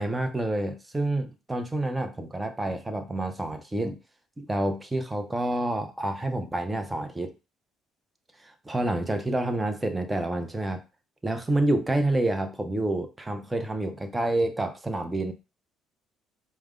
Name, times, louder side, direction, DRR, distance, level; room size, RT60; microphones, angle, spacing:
voice 1, 0.0-4.0 4.4-7.3 8.4-10.8 11.2-15.3, right 1 dB, 15° right, 0.6 m, -28 dB
4.7 x 2.1 x 3.6 m
supercardioid pair, 85°, 0 cm